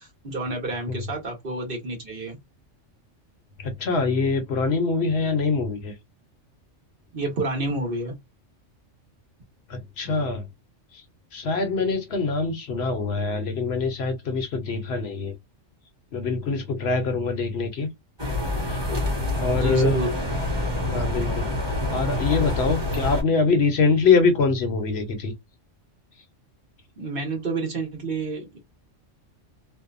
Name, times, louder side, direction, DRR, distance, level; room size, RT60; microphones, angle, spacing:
voice 1, 0.0-2.4 7.1-8.2 19.5-20.1 27.0-28.6, right 2 dB, 50° right, 1.1 m, -29 dB
voice 2, 3.6-5.9 9.7-10.5 10.9-11.0 11.3-15.3 16.1-17.9 18.7-18.8 19.4-20.0 20.9-21.5 21.9-25.3, left 4 dB, 65° left, 0.8 m, -24 dB
sound 1, 18.2-23.2, left 1 dB, 20° right, 1.2 m, -26 dB
2.6 x 2.1 x 2.4 m
omnidirectional pair, 1.3 m